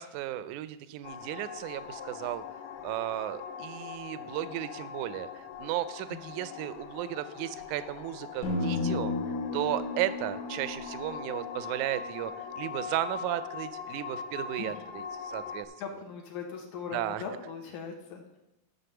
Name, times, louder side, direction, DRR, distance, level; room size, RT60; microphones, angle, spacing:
voice 1, 0.0-2.4 2.8-9.2 9.5-15.7 16.9-17.2, right 13 dB, 80° right, 13 dB, 1.9 m, -35 dB
sound 1, 1.0-15.7, left 6 dB, 90° left, 2.4 m, -42 dB
sound 2, 8.4-12.6, left 3 dB, 45° left, 1.2 m, -34 dB
voice 2, 15.8-18.4, left 6 dB, 70° left, 0 dB, 2.5 m, -40 dB
11.5 x 3.9 x 6.8 m, 0.89 s
omnidirectional pair, 3.7 m